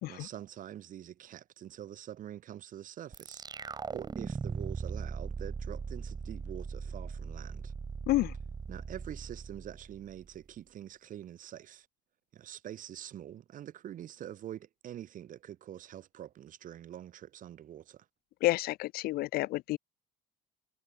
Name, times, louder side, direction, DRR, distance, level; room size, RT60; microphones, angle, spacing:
voice 1, 0.1-7.7 8.7-11.9 12.3-18.0, right 11 dB, 50° right, 1.2 m, -45 dB
sound 1, 3.1-10.4, right 5 dB, 25° right, 0.8 m, -39 dB
voice 2, 18.4-19.8, left 18 dB, 60° left, 0.5 m, -29 dB
supercardioid pair, 85°, 18 cm